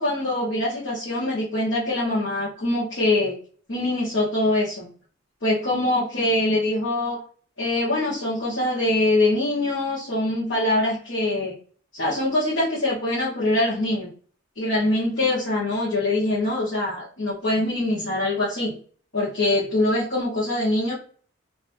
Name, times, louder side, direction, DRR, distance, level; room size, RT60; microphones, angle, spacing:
voice 1, 0.0-3.3 3.7-4.9 5.4-7.2 7.6-11.5 11.9-14.1 14.6-18.8 19.1-20.9, left 1 dB, 65° left, -8 dB, 1.6 m, -23 dB
4.0 x 3.2 x 2.8 m, 0.44 s
head